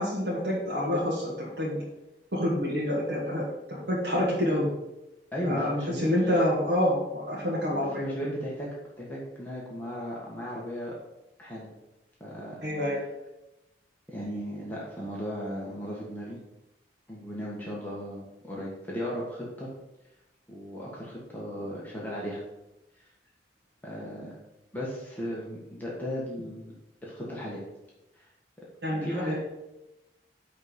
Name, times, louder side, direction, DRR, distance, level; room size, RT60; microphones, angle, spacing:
voice 1, 0.0-1.8 2.3-3.4 3.7-4.7 5.4-8.0 12.6-13.0 28.8-29.4, left 1 dB, 65° right, -5 dB, 2.0 m, -27 dB
voice 2, 5.3-6.1 8.0-10.9 11.4-11.7 12.2-12.6 14.1-16.4 17.1-19.7 20.5-22.4 23.0-23.1 23.8-24.4 24.7-26.7 27.0-27.6 28.1-28.3 29.0-29.4, equal, 10° left, -5 dB, 1.5 m, -36 dB
9.5 x 4.2 x 5.1 m, 0.94 s
head